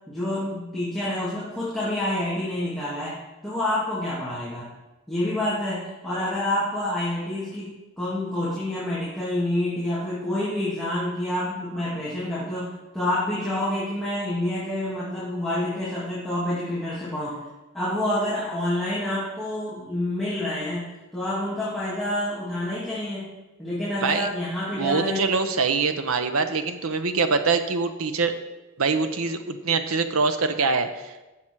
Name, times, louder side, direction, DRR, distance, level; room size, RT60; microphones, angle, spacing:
voice 1, 0.1-3.2 3.4-4.7 5.1-17.4 17.7-20.8 21.1-23.3 23.6-25.2, left 1 dB, ahead, -11 dB, 2.6 m, -28 dB
voice 2, 24.7-28.3 28.8-31.3, right 4 dB, 80° right, 8 dB, 1.0 m, -24 dB
13.5 x 7.8 x 4.7 m, 1.1 s
head